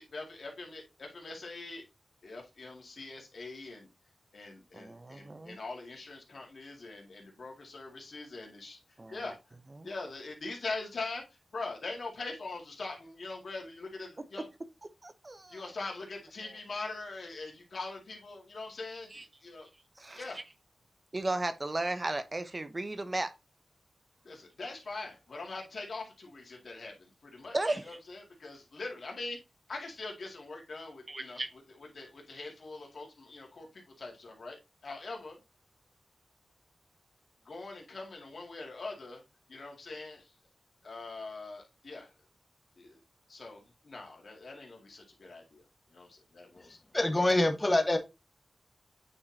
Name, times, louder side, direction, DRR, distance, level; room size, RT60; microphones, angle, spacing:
voice 1, 0.0-1.8 2.2-3.9 4.3-8.8 9.1-9.4 9.8-11.2 11.5-14.5 15.5-19.7 20.1-20.4 24.2-27.6 27.8-29.4 29.7-31.4 31.8-34.6 34.8-35.4 37.5-39.2 39.5-40.3 40.8-42.1 42.8-43.0 43.3-45.6 45.9-46.8, left 3 dB, 70° left, 2.2 m, -42 dB
voice 2, 4.7-5.6 9.0-9.2 9.8-9.9 14.4-14.5 15.0-15.7 19.1-19.2 20.0-20.4 21.1-23.3 27.5-28.0 31.1-31.5, right 2 dB, 35° right, 0.7 m, -35 dB
voice 3, 46.9-48.0, left 1 dB, 25° left, 1.2 m, -25 dB
8.7 x 4.3 x 2.7 m
cardioid pair, 65°, 0 cm